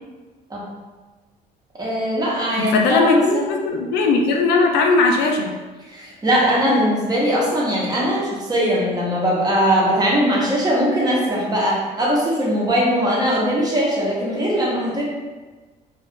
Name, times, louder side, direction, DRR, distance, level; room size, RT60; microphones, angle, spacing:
voice 1, 1.8-3.4 5.9-15.0, equal, 25° right, -5 dB, 1.0 m, -20 dB
voice 2, 2.6-5.5, left 3 dB, 80° left, 2 dB, 0.4 m, -18 dB
2.4 x 2.4 x 3.6 m, 1.3 s
cardioid pair, 110°, 17 cm